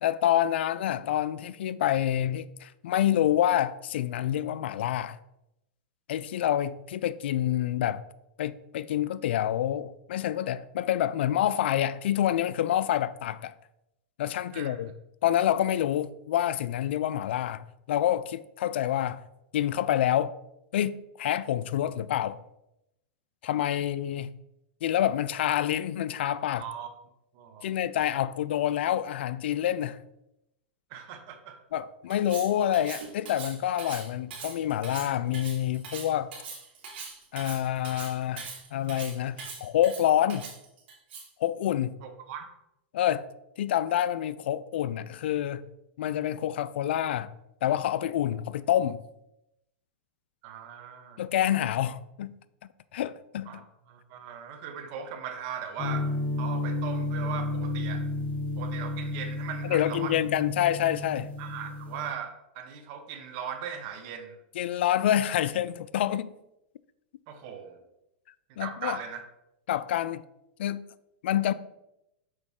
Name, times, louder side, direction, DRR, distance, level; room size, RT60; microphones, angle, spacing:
voice 1, 0.0-5.2 6.1-8.0 8.4-13.5 14.2-14.9 15.2-17.6 17.9-19.2 19.5-20.3 20.7-22.4 23.4-24.3 24.8-26.7 27.6-30.0 31.7-36.3 37.3-40.5 41.4-42.0 42.9-43.2 43.6-45.6 46.0-47.3 47.6-49.0 51.2-52.3 52.9-53.6 59.7-61.3 64.6-66.3 68.6-69.0 69.7-70.2 70.6-70.9 71.2-71.5, left 11 dB, 75° left, 0.4 m, -27 dB
voice 2, 14.5-14.8 26.6-26.9 27.3-27.7 30.9-31.6 42.0-42.4 50.4-51.2 53.5-56.1 56.4-58.1 58.6-60.2 61.4-64.4 67.3-67.8 68.5-69.2, right 8 dB, 50° right, 1.1 m, -39 dB
Cutlery silverware, 32.1-41.4, right 5 dB, 70° right, 2.5 m, -42 dB
sound 1, 55.8-62.1, left 2 dB, 25° left, 1.4 m, -32 dB
6.4 x 4.9 x 3.6 m
supercardioid pair, 140°, 6 cm